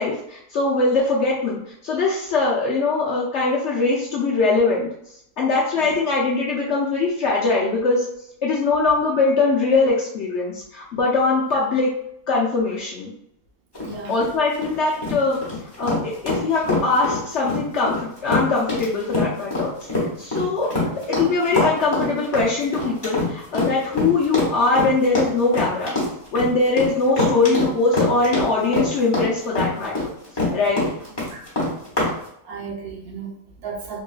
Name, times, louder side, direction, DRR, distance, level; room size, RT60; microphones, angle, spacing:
voice 1, 0.0-4.9 5.4-8.0 8.4-11.9 12.3-13.1 14.1-15.4 15.8-18.0 18.2-19.7 20.2-25.9 26.3-30.1 30.5-30.9, left 3 dB, 65° left, -4 dB, 0.7 m, -21 dB
sound 1, 13.7-32.1, left 2 dB, 20° left, 0.8 m, -24 dB
voice 2, 13.8-14.1 20.7-20.9 31.3-31.4 32.4-34.0, right 5 dB, 75° right, -1 dB, 1.2 m, -35 dB
3.7 x 2.6 x 2.3 m, 0.74 s
omnidirectional pair, 1.6 m